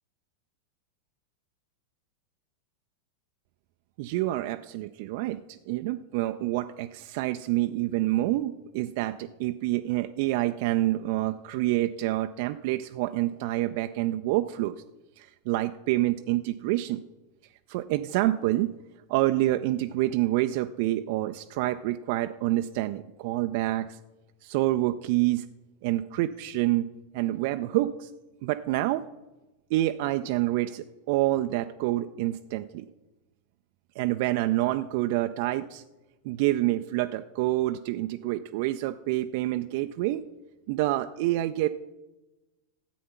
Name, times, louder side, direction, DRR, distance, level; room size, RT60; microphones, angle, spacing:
voice 1, 4.0-14.8 15.2-17.0 17.7-18.7 19.1-24.0 24.4-25.5 25.8-28.1 28.4-29.0 29.7-32.9 34.0-35.8 36.2-40.2 40.7-41.7, right 16 dB, 50° right, 8 dB, 0.4 m, -27 dB
13.0 x 8.4 x 5.8 m, 1.1 s
figure-of-eight pair, 90°, 0 cm